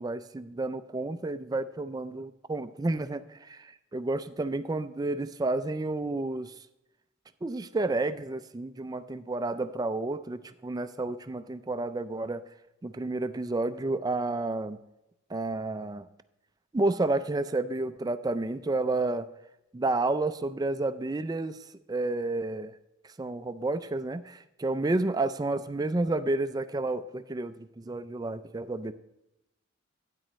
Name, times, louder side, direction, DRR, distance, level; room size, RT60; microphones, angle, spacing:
voice 1, 0.0-6.5 7.4-12.4 12.8-14.8 15.3-16.1 16.7-19.3 19.7-21.6 21.9-22.7 23.2-28.9, right 2 dB, 20° right, 12 dB, 0.3 m, -30 dB
12.5 x 9.1 x 3.1 m, 0.92 s
head